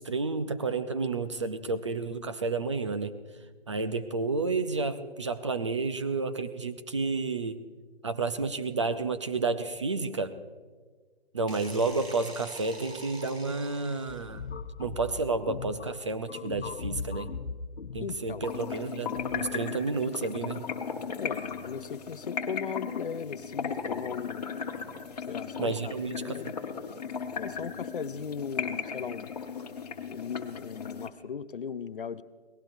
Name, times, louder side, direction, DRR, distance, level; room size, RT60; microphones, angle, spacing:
voice 1, 0.0-3.2 3.7-7.6 8.0-10.3 11.3-14.5 14.8-17.3 17.9-20.7 25.6-26.5, right 3 dB, 30° right, 10 dB, 0.5 m, -31 dB
sound 1, 11.5-14.4, right 3 dB, 75° right, 3.0 m, -46 dB
sound 2, 14.1-19.5, left 5 dB, 80° left, 1.0 m, -39 dB
voice 2, 18.0-18.5 21.2-24.5 25.3-26.5 27.4-29.3 30.1-32.2, left 6 dB, 55° left, 13 dB, 0.7 m, -38 dB
sound 3, 18.4-31.1, left 6 dB, 40° left, 1.2 m, -36 dB
28.5 x 18.5 x 2.7 m, 1.5 s
hypercardioid pair, 160°, 32 cm